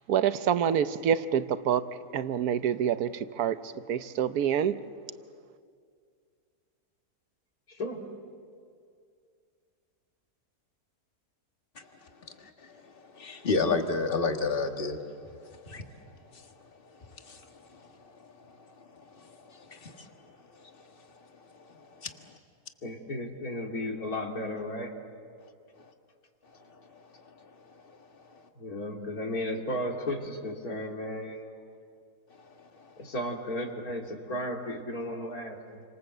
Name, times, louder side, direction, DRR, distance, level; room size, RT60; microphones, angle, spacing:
voice 1, 0.1-1.8 2.1-3.6 3.9-4.8, right 9 dB, 70° right, 12 dB, 1.3 m, -26 dB
voice 2, 7.7-8.0 22.8-24.9 28.6-31.5 33.0-35.8, left 1 dB, 65° left, 1 dB, 3.3 m, -34 dB
voice 3, 13.2-15.0 15.7-15.8 17.3-17.4 19.7-19.9, left 4 dB, 35° left, 4 dB, 1.9 m, -28 dB
29.5 x 25.5 x 8.0 m, 2.2 s
omnidirectional pair, 1.7 m